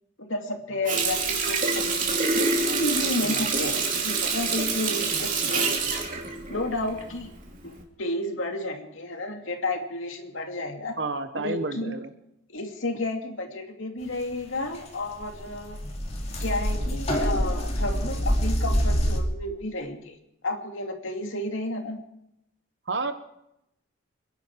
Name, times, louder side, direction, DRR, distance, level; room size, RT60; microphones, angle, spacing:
voice 1, 0.2-5.9 6.5-7.3 7.6-11.0 11.3-12.0 12.5-15.8 16.4-20.2 20.4-22.0, left 2 dB, 80° left, 4 dB, 2.6 m, -32 dB
Water tap faucet, 0.9-7.2 7.6-7.8, right 4 dB, 40° right, 2.9 m, -26 dB
voice 2, 11.0-12.1 16.7-17.2 22.9-23.1, right 3 dB, 60° right, 9 dB, 1.4 m, -31 dB
sound 1, 14.7-14.8 15.0-19.2, equal, 30° left, 2.6 m, -26 dB
27.5 x 11.0 x 4.8 m, 0.83 s
head